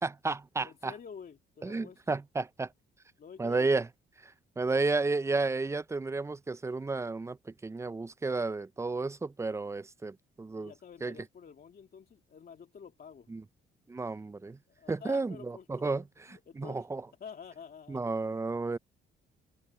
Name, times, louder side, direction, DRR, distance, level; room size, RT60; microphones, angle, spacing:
voice 1, 0.0-0.9 1.6-2.7 3.4-3.9 4.2-10.7 11.0-11.1 13.3-13.4 13.9-14.6 14.9-16.0 16.6-17.0 17.9-18.8, right 3 dB, 15° right, 0.4 m, -32 dB
voice 2, 0.6-2.2 3.2-3.7 10.5-13.3 14.7-16.9 17.2-18.1, left 6 dB, 50° left, 2.6 m, -49 dB
cardioid pair, 90°, 20 cm